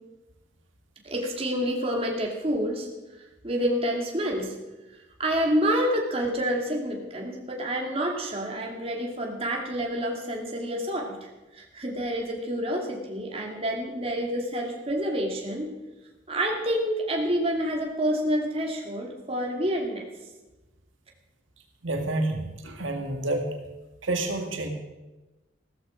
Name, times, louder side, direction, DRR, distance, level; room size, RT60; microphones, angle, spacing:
voice 1, 1.0-2.9 3.4-4.5 5.2-11.3 11.6-15.7 16.3-20.0, equal, 30° right, 0 dB, 2.5 m, -28 dB
voice 2, 21.8-23.5 24.0-24.7, right 2 dB, 85° right, 3 dB, 2.1 m, -29 dB
16.0 x 13.5 x 5.1 m, 1.1 s
head